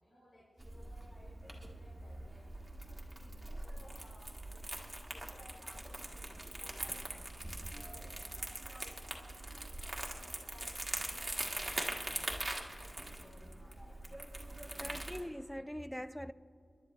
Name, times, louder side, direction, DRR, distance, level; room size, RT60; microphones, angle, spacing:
voice 1, 0.0-4.8 5.1-7.1 7.7-8.6 8.9-12.4 12.7-14.0 14.6-14.9, left 1 dB, 60° left, 2.7 m, -60 dB
Crumpling crinkling, 0.6-15.2, right 1 dB, 15° right, 1.6 m, -42 dB
voice 2, 14.8-16.3, equal, 5° left, 0.4 m, -42 dB
28.5 x 11.5 x 3.0 m
wide cardioid pair, 85°, 0 cm